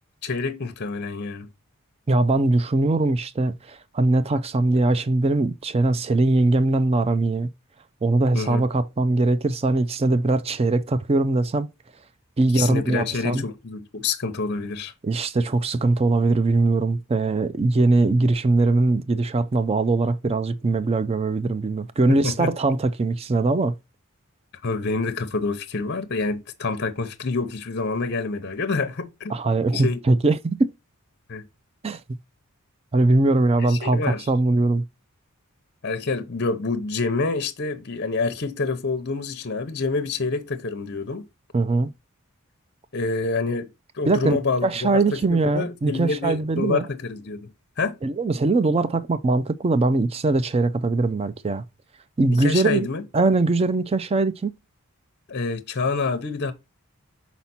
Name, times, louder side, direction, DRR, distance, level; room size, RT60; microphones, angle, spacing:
voice 1, 0.2-1.5 8.3-8.6 12.5-14.9 22.2-22.5 24.6-29.4 29.7-30.0 31.3-31.5 33.7-34.3 35.8-41.3 42.9-43.7 43.9-48.0 52.3-53.0 55.3-56.5, left 4 dB, 50° left, 0.7 m, -27 dB
voice 2, 2.1-7.5 8.0-11.7 12.4-13.4 15.0-23.7 29.3-30.7 31.8-32.0 32.9-34.8 41.5-41.9 44.1-44.4 44.6-46.9 48.0-51.6 52.2-52.9 53.1-54.5, right 2 dB, 25° right, 0.4 m, -21 dB
5.8 x 4.2 x 4.1 m
head